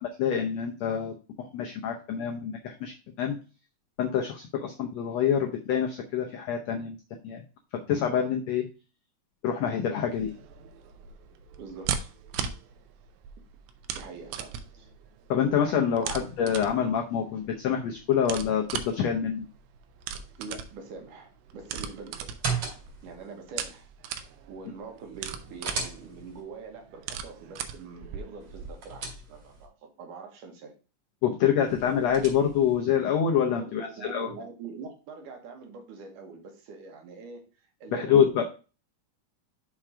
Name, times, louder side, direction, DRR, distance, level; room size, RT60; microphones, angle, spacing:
voice 1, 0.2-2.9 3.2-3.4 4.0-6.9 7.2-7.4 7.9-8.6 9.4-10.3 15.3-19.4 31.2-34.3 37.9-38.4, left 8 dB, 85° left, 2 dB, 1.5 m, -26 dB
sound 1, 10.1-28.7, right 8 dB, 90° right, 2.6 m, -39 dB
voice 2, 11.6-12.1 13.9-14.9 16.0-16.2 20.2-22.4 23.0-23.9 24.5-30.7 33.6-37.5 37.8-38.4, right 4 dB, 65° right, 3 dB, 2.6 m, -44 dB
sound 2, 22.2-23.1 25.1-26.4 28.4-29.7 31.6-32.8, right 4 dB, 45° right, 2.9 m, -36 dB
6.0 x 4.5 x 4.9 m, 0.34 s
omnidirectional pair, 4.1 m